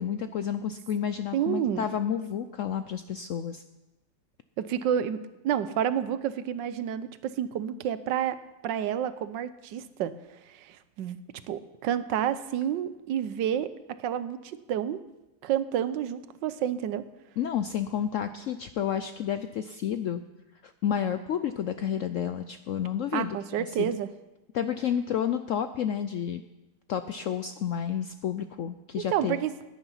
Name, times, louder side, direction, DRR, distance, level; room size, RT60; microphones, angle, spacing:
voice 1, 0.0-3.6 17.4-20.2 20.6-24.0 24.5-26.4 26.9-29.4, left 9 dB, 75° left, 10 dB, 0.7 m, -30 dB
voice 2, 1.3-1.8 4.6-8.4 8.6-10.1 10.5-11.2 11.5-13.7 14.0-15.0 15.4-17.0 23.1-24.1 29.1-29.5, right 10 dB, 85° right, 13 dB, 1.4 m, -29 dB
16.5 x 10.0 x 5.6 m, 1.0 s
omnidirectional pair, 1.9 m